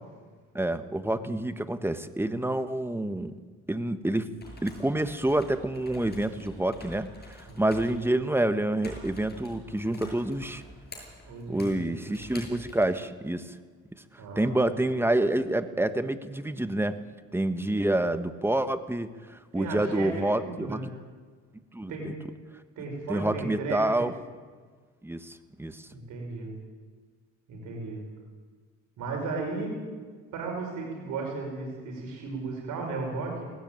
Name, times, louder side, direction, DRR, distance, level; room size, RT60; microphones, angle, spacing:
voice 1, 0.5-3.3 3.7-4.3 4.6-10.6 11.5-13.5 13.9-14.0 14.3-17.0 17.3-20.9 21.7-21.9 23.1-24.1 25.0-25.9, right 1 dB, 10° right, 10 dB, 1.4 m, -28 dB
sound 1, 4.2-12.8, left 1 dB, 35° left, 7.5 m, -47 dB
voice 2, 11.2-12.1 14.2-14.5 19.5-20.8 21.9-22.1 22.8-24.1 25.9-26.5 27.5-28.0 29.0-29.8 30.3-33.4, right 3 dB, 85° right, 0 dB, 5.6 m, -35 dB
19.0 x 17.0 x 8.9 m, 1.5 s
cardioid pair, 90°, 30 cm